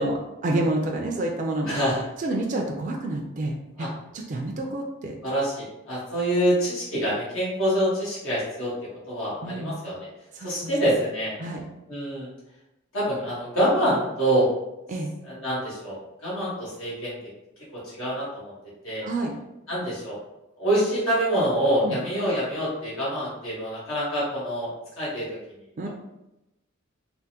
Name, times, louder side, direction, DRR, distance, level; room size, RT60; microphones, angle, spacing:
voice 1, 0.0-1.8 2.2-5.2 9.4-9.8 10.3-10.7 11.4-11.6 14.9-15.1 19.0-19.3 21.8-22.0 25.8-25.9, right 2 dB, 40° right, 1 dB, 0.3 m, -29 dB
voice 2, 1.7-2.0 3.8-3.9 5.2-8.7 9.1-10.1 10.4-11.3 11.9-12.3 12.9-14.5 15.2-17.2 17.7-18.5 18.8-19.0 19.7-20.2 20.6-25.4, equal, 85° left, -8 dB, 1.2 m, -26 dB
3.4 x 2.1 x 2.8 m, 0.91 s
head